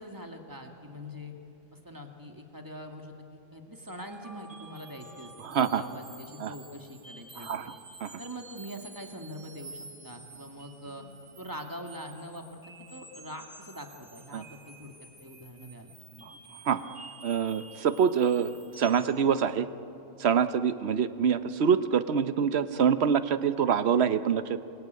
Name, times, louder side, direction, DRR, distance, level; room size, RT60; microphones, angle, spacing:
voice 1, 0.0-1.3 1.7-7.7 8.2-11.0 11.4-12.6 12.9-16.3, equal, 15° right, 3 dB, 2.3 m, -43 dB
sound 1, 3.7-19.2, right 2 dB, 45° right, 2.4 m, -50 dB
voice 2, 5.4-5.8 6.4-6.5 7.4-7.7 8.0-8.1 14.3-14.4 16.6-16.8 17.2-19.7 20.2-24.6, right 7 dB, 60° right, 12 dB, 1.1 m, -25 dB
28.0 x 22.5 x 9.5 m, 2.8 s
omnidirectional pair, 1.3 m